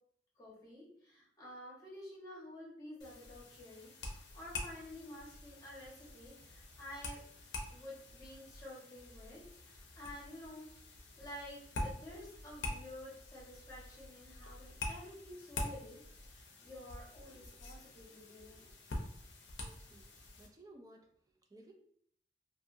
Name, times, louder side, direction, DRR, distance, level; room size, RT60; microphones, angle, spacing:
voice 1, 0.4-7.2 7.7-18.7, left 1 dB, 20° left, -6 dB, 1.1 m, -51 dB
sound 1, 3.0-20.5, left 2 dB, 80° left, 0.5 m, -46 dB
voice 2, 19.6-20.1 20.4-21.1 21.5-21.7, right 1 dB, 20° right, 2 dB, 0.4 m, -57 dB
2.6 x 2.6 x 2.4 m, 0.65 s
head